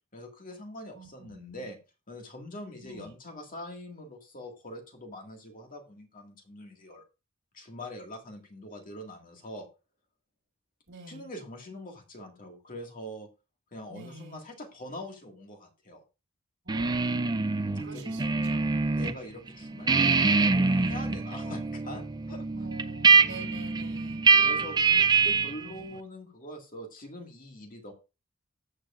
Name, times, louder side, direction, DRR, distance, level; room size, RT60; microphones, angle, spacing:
voice 1, 0.1-1.8 2.1-7.0 7.5-9.7 11.1-13.3 13.7-16.0 17.9-18.0 18.9-22.5 23.2-23.7 24.4-27.9, left 1 dB, 40° left, 3 dB, 1.9 m, -43 dB
voice 2, 0.9-1.7 2.8-3.1 10.9-11.3 13.9-14.4 16.6-18.9 22.5-24.3 25.3-25.9, right 2 dB, 60° right, 1 dB, 4.5 m, -47 dB
sound 1, 16.7-19.2 19.5-25.6, right 4 dB, 20° right, 0.4 m, -24 dB
14.0 x 7.8 x 2.5 m, 0.29 s
head